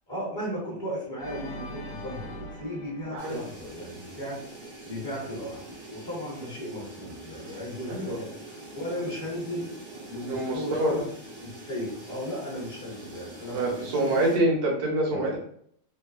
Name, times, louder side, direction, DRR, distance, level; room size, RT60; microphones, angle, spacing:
voice 1, 0.1-9.7 10.1-11.0 11.4-14.2 15.1-15.2, equal, 25° left, -7 dB, 0.6 m, -36 dB
Organ, 1.2-4.3, left 1 dB, 65° left, 0.9 m, -42 dB
voice 2, 3.1-3.4 7.9-8.2 10.3-11.0 13.5-15.4, right 1 dB, 80° right, -2 dB, 1.2 m, -26 dB
sound 1, 3.2-14.4, right 1 dB, 50° right, 0.7 m, -44 dB
3.0 x 2.2 x 2.3 m, 0.64 s
omnidirectional pair, 1.6 m